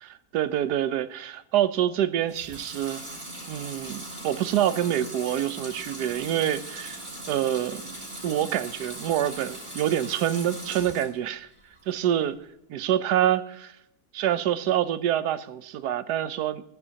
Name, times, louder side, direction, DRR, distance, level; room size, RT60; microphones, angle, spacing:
voice 1, 0.0-3.0 3.5-7.0 7.3-7.9 8.2-11.5 11.9-12.4 12.7-13.8 14.1-16.6, right 11 dB, 85° right, 1.2 m, -26 dB
Water tap faucet / Sink (filling or washing) / Liquid, 2.2-11.2 11.6-12.3, right 1 dB, 35° right, 4.8 m, -40 dB
18.0 x 10.5 x 2.8 m
omnidirectional pair, 1.7 m